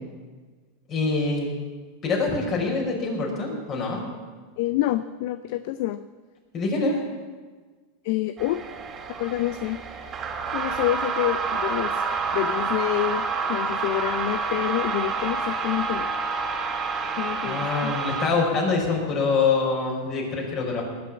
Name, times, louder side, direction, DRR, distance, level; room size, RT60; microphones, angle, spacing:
voice 1, 0.9-1.5 2.0-4.0 6.5-7.0 17.4-20.8, left 4 dB, 40° left, -1 dB, 5.3 m, -25 dB
voice 2, 4.6-6.0 8.0-8.6 9.2-9.8 10.5-12.0 12.3-16.1 17.2-17.9, left 14 dB, 65° left, 12 dB, 0.6 m, -27 dB
sound 1, 8.4-18.3, right 5 dB, 30° right, 2.8 m, -28 dB
19.5 x 6.9 x 8.4 m, 1.4 s
hypercardioid pair, 105°, 0 cm